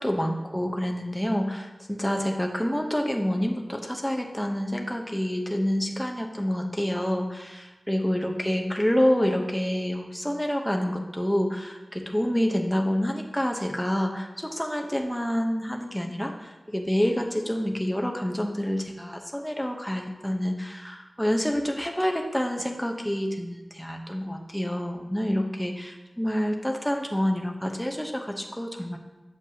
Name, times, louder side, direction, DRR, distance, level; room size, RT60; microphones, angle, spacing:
voice 1, 0.0-29.0, equal, 5° left, 2 dB, 0.9 m, -28 dB
7.9 x 6.9 x 2.8 m, 1.2 s
wide cardioid pair, 55°, 0 cm